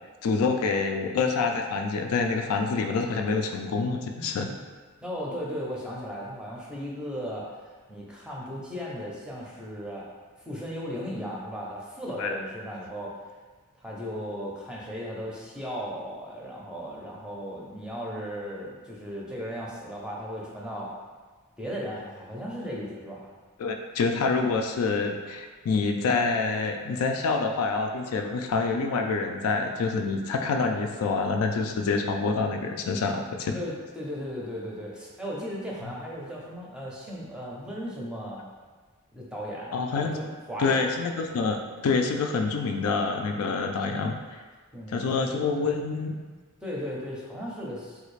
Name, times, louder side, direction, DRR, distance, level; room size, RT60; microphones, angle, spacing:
voice 1, 0.2-4.5 12.2-12.4 23.6-33.5 39.7-40.2 40.6-41.6 41.8-44.4 44.9-46.2, left 4 dB, 70° left, 3 dB, 0.3 m, -27 dB
voice 2, 5.0-7.5 7.9-10.1 10.4-13.1 13.8-20.9 21.6-23.3 33.5-38.5 39.1-41.1 44.7-45.2 46.6-48.0, equal, 5° right, -5 dB, 0.5 m, -36 dB
3.3 x 2.4 x 3.1 m, 1.4 s
head